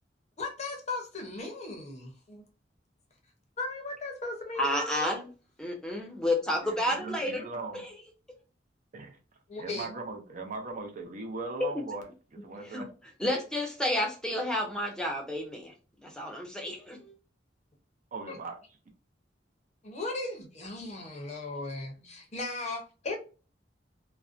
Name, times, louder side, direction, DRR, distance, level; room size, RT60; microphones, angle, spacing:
voice 1, 0.4-2.4 3.6-5.1 9.5-9.9 18.3-18.4 19.8-23.2, left 3 dB, 40° left, 0.6 m, -37 dB
voice 2, 4.6-5.3 5.6-7.9 11.6-11.8 12.6-12.8 13.2-15.7 16.0-17.1, left 1 dB, 5° left, 0.6 m, -31 dB
voice 3, 6.6-7.8 8.9-9.2 9.6-12.0 12.3-12.9 18.1-18.6, right 3 dB, 45° right, 0.5 m, -39 dB
2.5 x 2.1 x 2.4 m
head